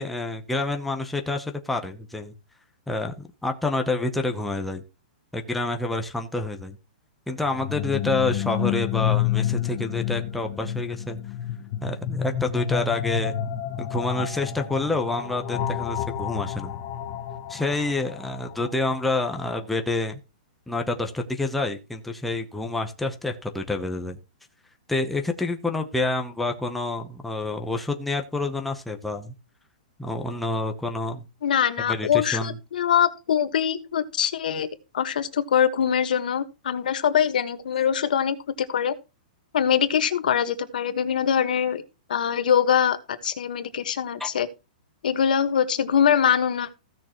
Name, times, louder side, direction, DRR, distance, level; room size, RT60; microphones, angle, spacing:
voice 1, 0.0-2.3 2.9-4.8 5.3-6.8 7.3-11.2 11.8-13.3 13.8-16.8 17.5-20.2 20.7-24.2 24.9-29.3 30.0-31.2 31.9-32.6 44.2-44.3, left 2 dB, ahead, 0.8 m, -28 dB
sound 1, 7.4-19.3, left 10 dB, 30° left, 0.9 m, -29 dB
voice 2, 31.4-34.7 34.9-38.9 39.5-41.8 42.1-43.0 43.2-44.5 45.0-46.7, left 8 dB, 75° left, 1.4 m, -23 dB
15.5 x 6.6 x 3.0 m
hypercardioid pair, 170°, 5 cm